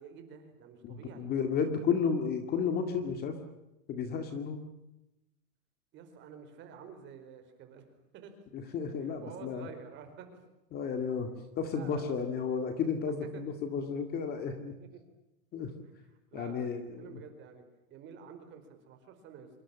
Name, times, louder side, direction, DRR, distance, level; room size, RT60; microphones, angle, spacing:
voice 1, 0.0-1.3 2.9-3.1 5.9-7.8 8.1-8.3 8.9-10.4 11.7-12.3 13.3-13.4 14.8-15.0 15.8-15.9 16.3-19.5, right 7 dB, 25° right, 7 dB, 4.7 m, -50 dB
voice 2, 0.8-3.4 3.9-4.6 8.5-9.7 10.7-14.7 15.5-15.7 16.3-17.2, left 6 dB, 20° left, 7 dB, 2.2 m, -33 dB
26.5 x 24.0 x 7.4 m, 0.92 s
supercardioid pair, 170°, 43 cm